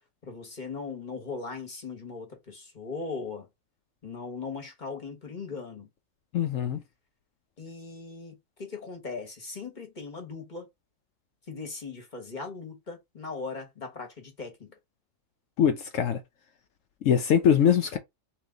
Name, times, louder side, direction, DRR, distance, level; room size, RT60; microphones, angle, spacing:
voice 1, 0.2-3.5 4.0-5.9 7.6-10.7 11.5-14.7, left 4 dB, 35° left, 1.2 m, -39 dB
voice 2, 6.3-6.8 15.6-16.2 17.0-18.0, left 8 dB, 75° left, 1.0 m, -22 dB
3.3 x 3.1 x 3.6 m
omnidirectional pair, 1.4 m